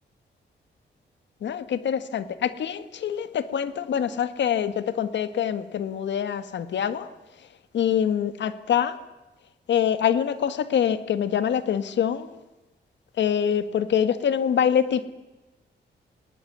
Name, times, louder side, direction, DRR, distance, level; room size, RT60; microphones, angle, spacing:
voice 1, 1.4-7.1 7.7-9.0 9.7-12.3 13.2-15.1, left 8 dB, 85° left, 12 dB, 1.6 m, -25 dB
20.0 x 19.5 x 9.5 m, 1.0 s
wide cardioid pair, 145°, 18 cm